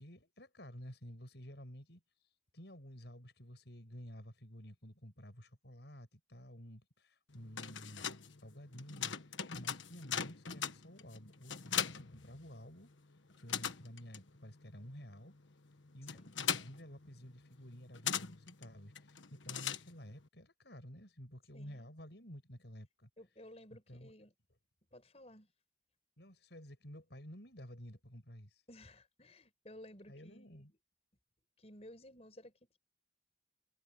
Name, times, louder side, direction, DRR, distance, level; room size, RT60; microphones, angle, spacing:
voice 1, 0.0-2.0 2.5-8.1 8.4-12.9 13.4-15.3 15.9-23.1 23.7-24.1 26.2-28.6 30.1-30.7, equal, 65° left, 6.7 m, -52 dB
sound 1, 7.3-12.9 13.2-20.3, left 8 dB, 85° left, 1.4 m, -41 dB
voice 2, 21.5-21.9 22.2-22.3 23.2-24.3 24.9-25.5 28.7-30.6 31.6-32.8, left 1 dB, 35° left, 6.0 m, -56 dB
head